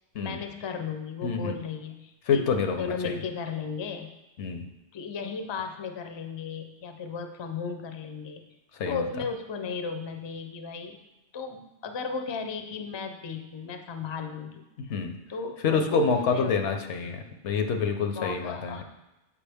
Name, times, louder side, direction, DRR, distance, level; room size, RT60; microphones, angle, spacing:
voice 1, 0.2-2.4 2.7-4.1 4.9-8.4 8.8-11.0 11.3-14.6 15.3-16.5 18.1-18.8, left 5 dB, 40° left, 6 dB, 0.4 m, -35 dB
voice 2, 1.2-1.6 2.3-3.2 4.4-4.7 8.8-9.1 14.9-15.1 15.6-18.8, left 5 dB, 80° left, 6 dB, 1.0 m, -27 dB
7.3 x 4.8 x 3.4 m, 0.97 s
omnidirectional pair, 1.2 m